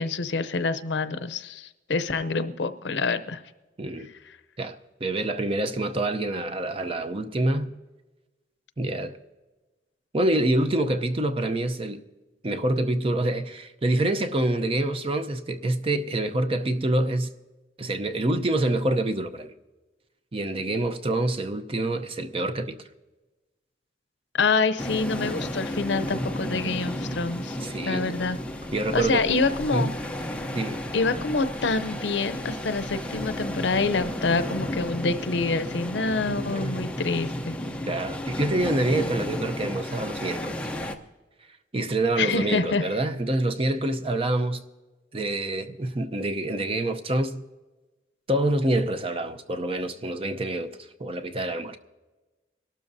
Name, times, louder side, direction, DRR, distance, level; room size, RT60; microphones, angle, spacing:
voice 1, 0.0-3.4 24.3-27.6 27.9-28.4 28.9-29.9 30.9-37.6 42.2-42.8, left 4 dB, 80° left, 0.6 m, -26 dB
voice 2, 3.8-4.1 4.6-7.7 8.8-9.1 10.1-12.0 12.4-17.3 17.8-19.5 20.3-22.8 27.6-28.1 28.7-29.2 29.7-29.9 30.5-30.8 36.5-36.8 37.9-40.6 41.7-44.6 45.1-47.4 48.3-50.7 51.0-51.8, right 1 dB, 30° right, 0.6 m, -26 dB
sound 1, 24.8-40.9, left 1 dB, 5° left, 0.7 m, -33 dB
sound 2, 34.4-40.4, left 3 dB, 70° right, 3.5 m, -51 dB
23.0 x 12.5 x 2.7 m
head